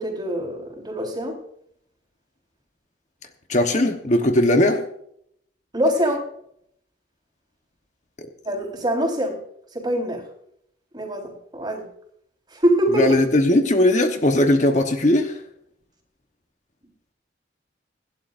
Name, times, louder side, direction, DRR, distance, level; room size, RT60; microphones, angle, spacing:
voice 1, 0.0-1.4 5.7-6.2 8.4-9.4 9.7-10.2 10.9-11.9 12.5-13.2, right 1 dB, 25° right, 0 dB, 4.2 m, -24 dB
voice 2, 3.5-4.8 12.9-15.4, left 1 dB, 40° left, 5 dB, 1.1 m, -18 dB
25.5 x 12.0 x 2.6 m, 0.71 s
head